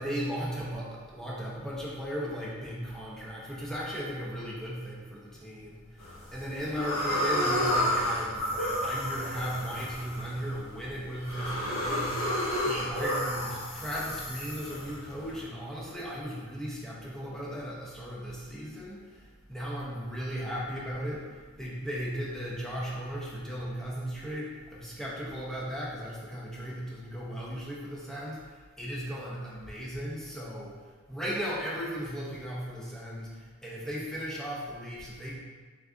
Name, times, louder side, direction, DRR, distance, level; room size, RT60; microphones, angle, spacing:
voice 1, 0.0-30.8 31.1-35.4, equal, ahead, -6 dB, 0.7 m, -36 dB
sound 1, 6.0-6.4 6.8-15.4, left 1 dB, 70° left, 1.0 m, -31 dB
4.1 x 3.5 x 2.4 m, 1.4 s
head